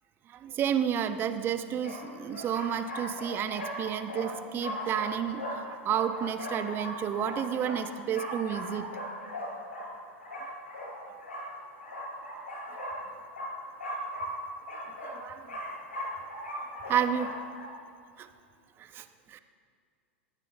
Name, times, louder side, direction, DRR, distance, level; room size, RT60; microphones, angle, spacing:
voice 1, 0.3-8.9 10.9-11.7 12.2-12.4 12.7-12.8 15.0-15.6 16.7-17.3 18.2-18.3 18.8-19.4, right 9 dB, 35° right, 10 dB, 1.1 m, -31 dB
sound 1, 1.0-1.1 1.8-17.7, equal, 85° left, 4.9 m, -39 dB
21.0 x 15.5 x 3.6 m, 2.3 s
hypercardioid pair, 95°, 7 cm